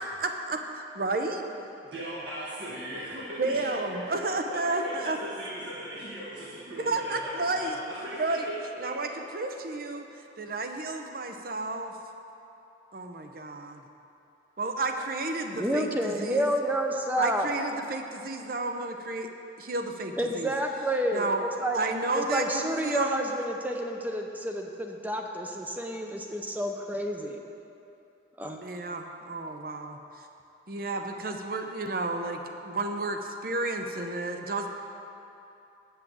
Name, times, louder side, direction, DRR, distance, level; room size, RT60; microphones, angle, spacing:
voice 1, 0.0-1.4 3.4-5.2 6.8-7.8 8.1-8.5 8.8-10.1 10.4-12.0 12.9-13.8 14.6-16.5 17.2-19.3 19.6-20.5 21.1-21.4 21.7-23.2 28.6-30.0 30.7-34.7, right 2 dB, 50° right, 5 dB, 0.7 m, -31 dB
voice 2, 1.9-8.6 8.8-8.9, equal, 70° right, -8 dB, 1.6 m, -39 dB
voice 3, 15.6-17.5 20.2-21.3 21.6-21.8 22.1-27.4 28.4-28.6, equal, 10° right, 2 dB, 0.6 m, -29 dB
8.5 x 5.6 x 7.7 m, 2.8 s
head